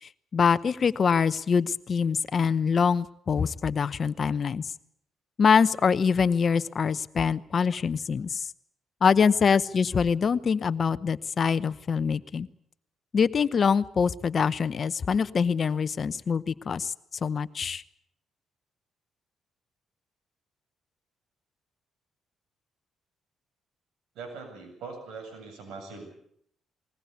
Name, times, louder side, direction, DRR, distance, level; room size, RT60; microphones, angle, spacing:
voice 1, 0.0-4.7 5.4-8.5 9.0-12.5 13.1-16.9 17.2-17.8, left 6 dB, 45° left, 15 dB, 0.8 m, -24 dB
voice 2, 24.1-26.2, right 4 dB, 85° right, 4 dB, 7.9 m, -41 dB
20.5 x 20.0 x 8.3 m, 0.70 s
cardioid pair, 90°, 0 cm